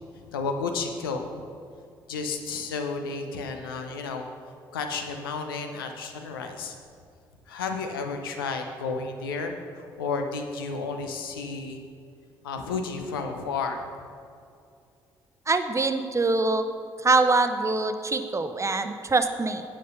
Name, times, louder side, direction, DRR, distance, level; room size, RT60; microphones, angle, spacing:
voice 1, 0.3-1.4 2.1-4.3 4.7-6.8 7.5-11.8 12.4-13.9, left 4 dB, 85° left, 5 dB, 0.7 m, -32 dB
voice 2, 15.5-16.6 17.0-19.6, right 3 dB, 25° right, 9 dB, 0.8 m, -24 dB
9.3 x 7.5 x 5.7 m, 2.4 s
figure-of-eight pair, 45°, 12 cm